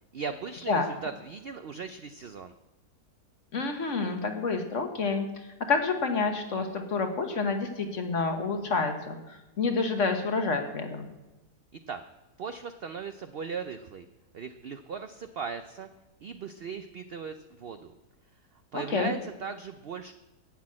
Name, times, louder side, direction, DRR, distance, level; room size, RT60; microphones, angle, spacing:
voice 1, 0.1-2.5 11.9-12.0 12.4-14.1 14.3-15.9 16.2-17.9 18.7-20.1, right 6 dB, 75° right, 8 dB, 0.5 m, -38 dB
voice 2, 3.5-5.3 5.7-11.1 18.7-19.1, left 4 dB, 50° left, 5 dB, 1.5 m, -28 dB
11.5 x 6.1 x 8.6 m, 1.0 s
omnidirectional pair, 1.7 m